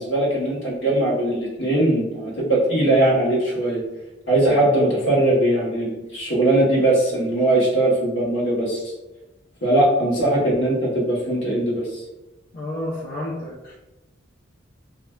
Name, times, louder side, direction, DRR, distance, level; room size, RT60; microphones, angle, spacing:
voice 1, 0.0-3.8 4.3-8.8 9.6-11.9, right 1 dB, 65° left, -4 dB, 1.0 m, -20 dB
voice 2, 12.5-13.7, left 1 dB, 45° left, -7 dB, 0.6 m, -30 dB
3.2 x 2.4 x 2.3 m, 1.0 s
head